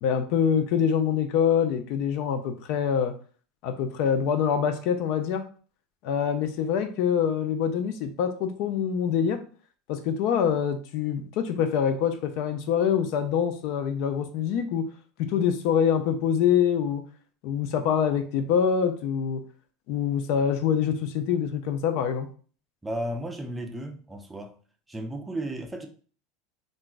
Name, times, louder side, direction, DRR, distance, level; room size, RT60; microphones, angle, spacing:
voice 1, 0.0-3.1 3.6-5.4 6.0-9.4 9.9-14.9 15.2-17.0 17.4-19.4 19.9-22.3, left 8 dB, 60° left, 0.4 m, -25 dB
voice 2, 22.8-24.5 24.9-25.9, right 1 dB, 10° right, 0.5 m, -34 dB
2.5 x 2.2 x 3.8 m
supercardioid pair, 120°, 0 cm